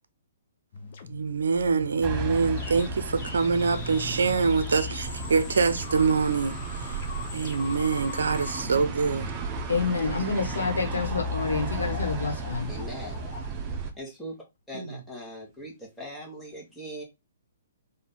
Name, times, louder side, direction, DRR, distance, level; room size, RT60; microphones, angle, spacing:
sound 1, 0.7-9.6 10.1-10.3 10.6-14.5, left 5 dB, 50° left, 0.9 m, -43 dB
voice 1, 1.1-7.0 7.3-9.3 14.7-15.0, right 5 dB, 70° right, 0.6 m, -25 dB
sound 2, 2.0-13.9, right 2 dB, 25° right, 0.9 m, -34 dB
voice 2, 9.7-12.7, left 4 dB, 80° left, 1.5 m, -28 dB
voice 3, 12.7-13.2 14.0-14.3 14.7-17.0, equal, 5° left, 1.5 m, -40 dB
3.9 x 2.7 x 3.8 m
figure-of-eight pair, 125°, 0 cm